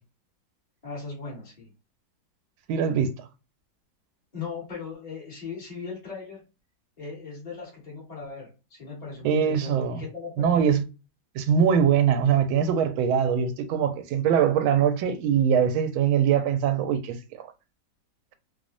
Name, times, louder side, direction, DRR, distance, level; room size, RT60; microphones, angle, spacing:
voice 1, 0.8-1.7 4.3-6.4 7.0-10.8, left 5 dB, 25° left, 1.0 m, -38 dB
voice 2, 2.7-3.1 9.2-10.0 10.4-10.8 11.4-17.5, right 8 dB, 90° right, 1.4 m, -22 dB
3.2 x 2.0 x 2.4 m
omnidirectional pair, 2.2 m